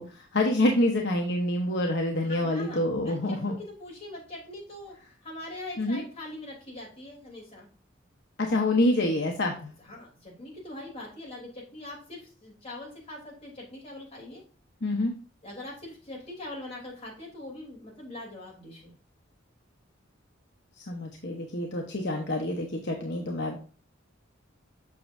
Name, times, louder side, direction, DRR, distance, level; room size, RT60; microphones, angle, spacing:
voice 1, 0.0-3.5 5.8-6.0 8.4-9.7 14.8-15.1 20.8-23.6, left 1 dB, 60° left, 1 dB, 0.9 m, -27 dB
voice 2, 2.2-5.0 5.2-7.7 9.6-14.4 15.4-18.9 22.8-23.3, left 1 dB, 30° left, -3 dB, 3.2 m, -42 dB
7.4 x 6.0 x 2.6 m, 0.39 s
head